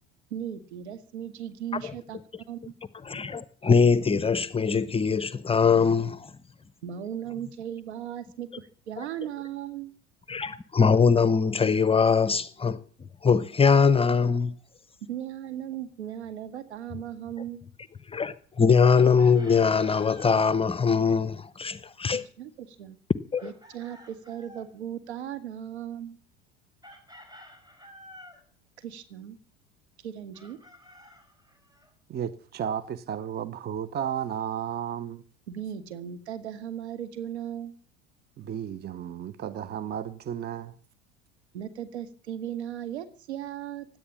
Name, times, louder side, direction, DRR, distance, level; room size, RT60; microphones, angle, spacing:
voice 1, 0.3-2.2 2.5-2.7 6.8-9.9 15.1-17.6 22.4-23.0 23.4-26.2 28.8-29.4 30.0-30.6 35.5-37.7 41.5-43.9, right 10 dB, 65° right, 2.0 m, -37 dB
voice 2, 3.1-6.3 9.0-9.1 10.3-12.8 13.2-14.5 18.1-22.2 23.3-23.4, left 5 dB, 15° left, 0.8 m, -22 dB
Chicken rooster, 18.9-20.4 23.4-24.7 26.8-28.4 30.3-31.9, left 1 dB, 10° right, 4.8 m, -50 dB
voice 3, 32.1-35.2 38.4-40.7, right 9 dB, 30° right, 0.9 m, -33 dB
17.0 x 10.5 x 7.2 m
figure-of-eight pair, 70°, 35 cm